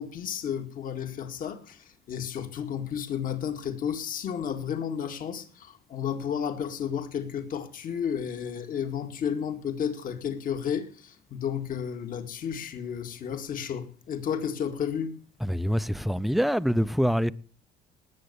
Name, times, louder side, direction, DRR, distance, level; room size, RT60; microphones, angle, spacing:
voice 1, 0.0-15.1, left 8 dB, 55° left, 2.1 m, -32 dB
voice 2, 15.4-17.3, equal, ahead, 0.6 m, -25 dB
19.0 x 7.6 x 6.9 m
cardioid pair, 110°, 17 cm